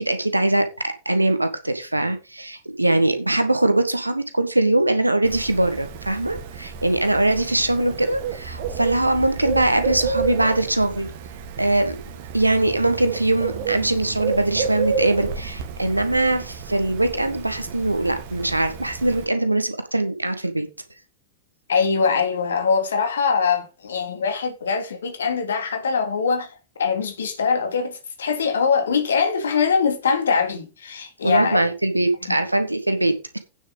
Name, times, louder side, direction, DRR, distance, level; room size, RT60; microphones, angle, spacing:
voice 1, 0.0-11.1 11.6-12.0 12.3-20.7 31.2-33.4, right 2 dB, 85° right, 1.7 m, -22 dB
Bird, 5.2-19.2, right 6 dB, 50° right, 2.1 m, -31 dB
voice 2, 21.7-31.6 32.3-32.4, left 5 dB, 70° left, 2.8 m, -22 dB
9.3 x 7.0 x 5.3 m
figure-of-eight pair, 90°, 0 cm